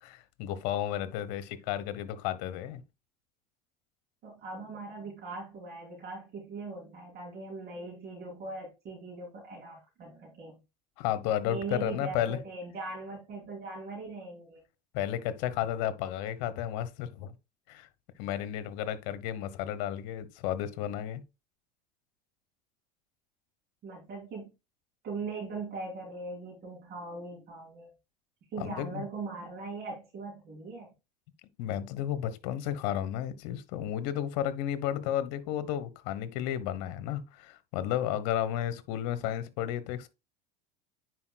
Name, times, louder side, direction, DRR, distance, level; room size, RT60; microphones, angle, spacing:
voice 1, 0.0-2.8 11.0-12.4 14.9-17.3 17.7-17.9 18.2-21.2 28.6-29.0 31.6-40.1, left 11 dB, 65° left, 1.1 m, -33 dB
voice 2, 4.2-10.6 11.5-14.6 23.8-24.5 25.0-27.9 28.5-30.9, right 3 dB, 50° right, 3.1 m, -40 dB
9.7 x 4.9 x 2.3 m
hypercardioid pair, 95°, 21 cm